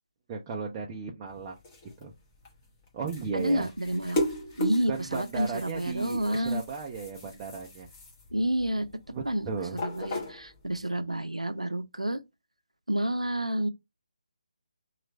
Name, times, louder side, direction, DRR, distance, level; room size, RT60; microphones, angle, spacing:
voice 1, 0.3-1.6 2.0-2.1 2.9-3.7 4.9-7.9 9.1-9.8, right 5 dB, 20° right, 0.5 m, -35 dB
sound 1, 1.3-10.8, left 1 dB, 25° left, 1.1 m, -38 dB
voice 2, 3.3-4.2 4.6-6.6 8.3-8.9 9.2-9.5 9.8-12.2 12.9-13.7, right 1 dB, 85° right, 0.6 m, -29 dB
3.1 x 2.4 x 4.2 m
figure-of-eight pair, 145°, 3 cm